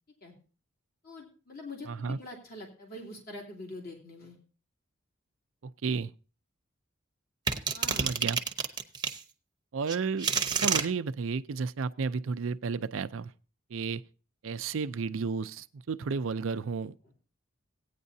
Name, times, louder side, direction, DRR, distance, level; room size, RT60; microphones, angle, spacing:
voice 1, 1.0-4.4 7.7-8.1 17.0-17.1, left 2 dB, 45° left, 2.8 m, -44 dB
voice 2, 1.9-2.2 5.6-6.1 8.0-8.4 9.7-10.3 10.6-13.3 13.7-14.0 14.4-17.1, right 5 dB, 75° right, 0.5 m, -32 dB
sound 1, 7.5-9.2 9.9-10.9, right 6 dB, 20° right, 0.8 m, -28 dB
16.5 x 9.5 x 2.7 m
head